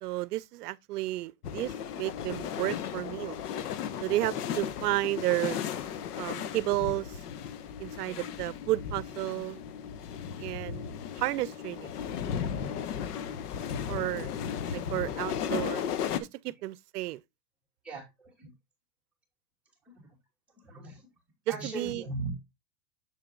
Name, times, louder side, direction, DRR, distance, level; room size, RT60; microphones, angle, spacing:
voice 1, 0.0-3.4 4.0-5.6 6.2-7.2 7.8-9.6 10.4-11.9 13.9-14.3 14.7-15.9 16.4-17.2 21.6-22.0, right 16 dB, 85° right, 0.6 m, -32 dB
sound 1, 1.4-16.2, left 8 dB, 80° left, 1.1 m, -35 dB
voice 2, 17.8-18.5 19.8-19.9 20.5-21.0 21.5-22.3, right 2 dB, 5° right, 2.6 m, -39 dB
7.5 x 6.9 x 2.4 m
supercardioid pair, 155°, 45 cm